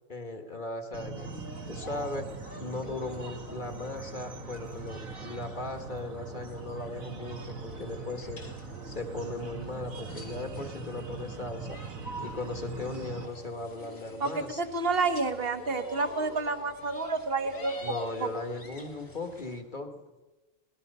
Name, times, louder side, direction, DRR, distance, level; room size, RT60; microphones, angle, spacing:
voice 1, 0.1-1.3 1.7-2.3 2.6-8.4 8.9-11.8 12.2-14.6 17.8-20.2, left 2 dB, 35° left, 5 dB, 1.9 m, -38 dB
sound 1, 0.9-13.3, right 4 dB, 85° right, 2.2 m, -41 dB
sound 2, 1.2-19.6, left 2 dB, 80° left, 3.4 m, -47 dB
voice 2, 14.2-17.7 18.2-18.3, right 3 dB, 45° right, 8 dB, 1.6 m, -29 dB
24.5 x 20.0 x 5.5 m, 1.2 s
omnidirectional pair, 1.4 m